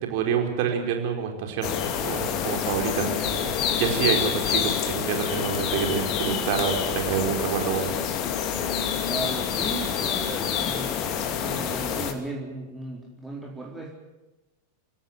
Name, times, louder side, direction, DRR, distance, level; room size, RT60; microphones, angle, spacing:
voice 1, 0.0-7.9, right 7 dB, 50° right, 3 dB, 5.0 m, -27 dB
sound 1, 1.6-12.1, left 8 dB, 40° left, 2.6 m, -27 dB
voice 2, 9.1-10.9 11.4-13.9, right 2 dB, 10° right, -1 dB, 4.3 m, -36 dB
27.0 x 17.0 x 7.6 m, 1.0 s
figure-of-eight pair, 90°, 0 cm